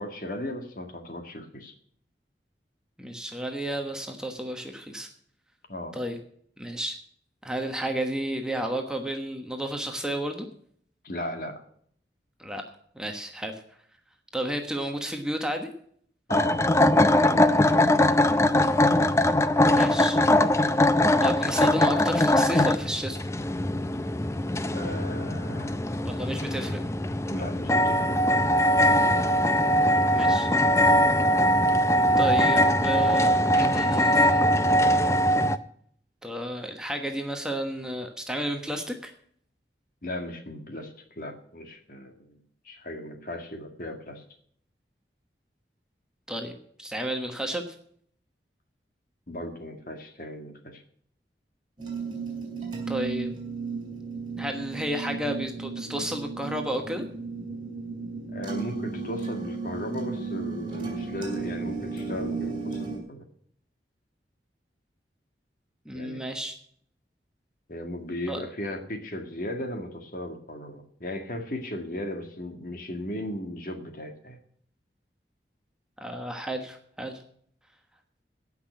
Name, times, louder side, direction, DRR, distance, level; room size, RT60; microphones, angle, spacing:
voice 1, 0.0-1.7 5.7-5.9 11.0-11.6 16.3-16.6 16.9-18.0 24.7-25.8 27.3-28.3 40.0-42.4 42.6-44.2 49.3-50.8 58.3-63.2 65.9-66.2 67.7-74.4, left 1 dB, 50° left, 5 dB, 1.8 m, -36 dB
voice 2, 3.0-5.1 5.9-6.2 6.6-7.0 7.4-10.5 12.4-12.6 12.9-13.5 14.3-15.7 19.7-20.2 21.2-23.2 26.0-26.8 30.1-30.5 32.2-34.5 36.2-39.1 46.3-46.5 46.8-47.6 52.9-53.3 54.4-57.0 65.8-66.5 68.3-68.4 76.0-77.2, right 1 dB, 5° right, 4 dB, 1.2 m, -32 dB
sound 1, 16.3-35.6, left 1 dB, 15° left, 0.5 m, -21 dB
sound 2, 51.8-63.0, right 4 dB, 25° right, 3.9 m, -34 dB
15.5 x 6.0 x 8.1 m, 0.62 s
head